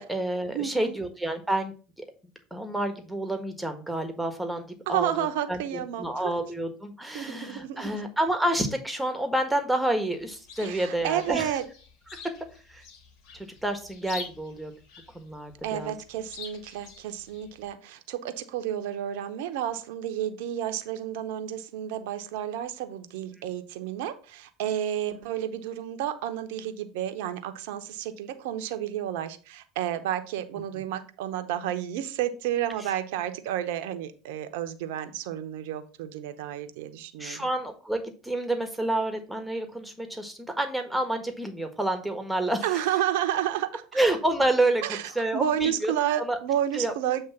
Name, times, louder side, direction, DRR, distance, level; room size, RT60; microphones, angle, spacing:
voice 1, 0.0-1.7 2.5-11.5 12.1-12.2 12.7-12.8 13.6-14.7 15.1-15.9 37.2-42.8 43.9-44.8 45.1-45.9 46.2-46.4 46.7-46.9, right 1 dB, 5° right, 6 dB, 1.5 m, -29 dB
voice 2, 0.5-1.0 4.9-6.3 7.1-8.0 10.6-11.6 15.6-37.5 42.6-43.8 44.8-47.2, right 11 dB, 70° right, 8 dB, 0.9 m, -31 dB
Chirp tweet, 10.1-17.7, left 5 dB, 65° left, 1.5 m, -47 dB
7.8 x 3.2 x 5.8 m, 0.36 s
hypercardioid pair, 80°, 0 cm